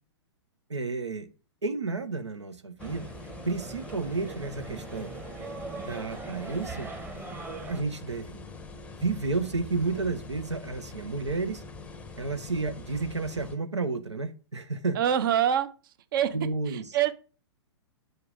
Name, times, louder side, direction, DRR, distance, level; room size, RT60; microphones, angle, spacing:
voice 1, 0.7-1.3 1.6-3.1 3.5-5.1 5.8-6.9 7.7-8.4 9.0-11.6 12.2-15.0 16.3-16.9, right 3 dB, 80° right, 10 dB, 0.7 m, -31 dB
sound 1, 2.8-13.6, left 3 dB, 10° left, 0.7 m, -44 dB
sound 2, 2.8-7.8, right 3 dB, 15° right, 1.0 m, -41 dB
voice 2, 14.9-15.7 16.1-16.4 16.7-17.1, right 10 dB, 50° right, 11 dB, 0.8 m, -25 dB
6.4 x 4.7 x 4.8 m, 0.36 s
figure-of-eight pair, 110°, 15 cm